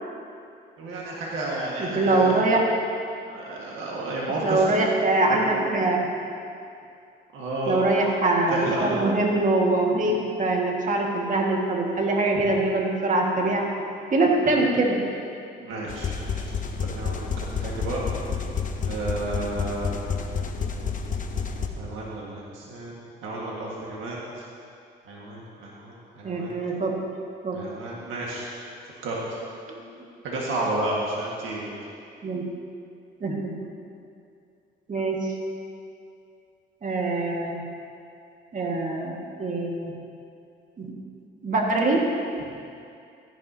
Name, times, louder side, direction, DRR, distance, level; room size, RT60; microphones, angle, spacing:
voice 1, 0.8-2.4 3.3-4.6 5.3-5.4 7.3-7.8 8.0-8.2 8.5-9.0 15.6-16.4 16.8-18.1 18.8-20.0 21.7-24.4 25.1-26.6 27.5-28.5 29.0-29.2 30.2-31.7, right 2 dB, 90° right, -4 dB, 1.7 m, -32 dB
voice 2, 1.8-2.7 4.4-6.0 7.7-13.7 14.1-15.0 26.2-27.1 27.4-27.6 32.2-32.4 33.2-33.5 34.9-35.2 36.8-37.6 38.5-39.9 40.8-40.9 41.4-42.0, right 2 dB, 40° right, -1 dB, 1.8 m, -23 dB
sound 1, 15.9-21.7, left 5 dB, 40° left, 0.9 m, -29 dB
14.0 x 11.0 x 2.8 m, 2.5 s
cardioid pair, 90°, 20 cm